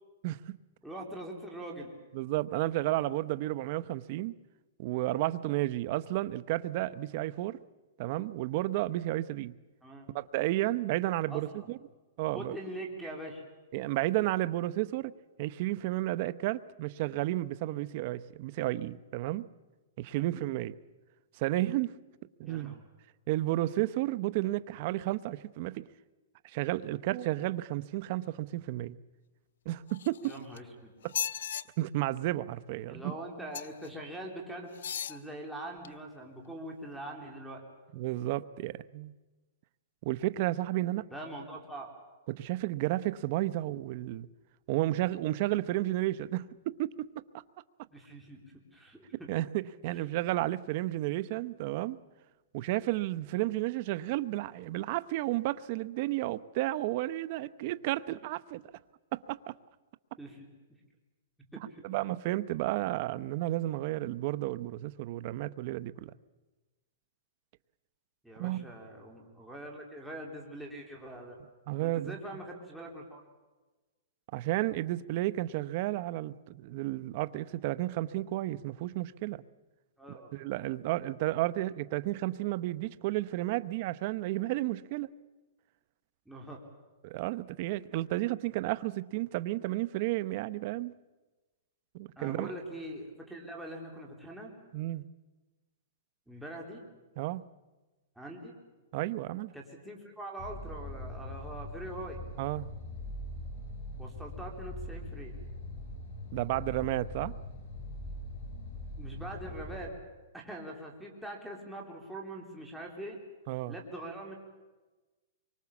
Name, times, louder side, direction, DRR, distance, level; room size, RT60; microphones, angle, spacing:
voice 1, 0.2-0.6 2.1-4.3 4.8-7.6 8.0-9.5 10.1-11.8 12.2-12.5 13.7-15.1 15.4-19.5 20.0-20.8 21.4-21.9 22.4-22.8 23.3-25.9 26.5-29.0 29.7-30.3 31.0-31.1 31.8-33.1 37.9-39.1 40.0-41.1 42.3-44.3 44.7-47.1 49.3-52.0 52.5-58.6 59.1-59.4 61.8-66.1 68.4-68.7 71.7-72.1 74.3-79.4 80.1-85.1 87.0-90.9 91.9-92.5 94.7-95.1 97.2-97.4 98.9-99.5 102.4-102.7 106.3-107.3 113.5-113.7, right 16 dB, 45° right, 15 dB, 0.8 m, -32 dB
voice 2, 0.8-1.9 9.8-10.1 11.3-11.7 12.3-13.4 22.4-22.8 30.2-30.9 32.9-34.7 35.1-37.6 41.1-41.9 47.9-48.4 48.7-49.3 60.2-60.5 61.5-61.8 68.2-71.4 71.8-73.2 80.0-80.3 86.3-86.6 92.2-94.5 96.3-96.8 98.2-98.5 99.5-102.2 104.0-105.3 109.0-109.9 110.3-113.2 113.7-114.4, right 1 dB, ahead, -2 dB, 3.7 m, -43 dB
sound 1, 29.9-30.6 31.0-31.6 33.5-33.9 34.7-35.2 35.8-35.9, left 9 dB, 75° left, 0.9 m, -36 dB
sound 2, 100.4-109.9, left 1 dB, 40° left, 4.8 m, -42 dB
25.0 x 24.0 x 7.2 m, 1.2 s
hypercardioid pair, 150°, 0 cm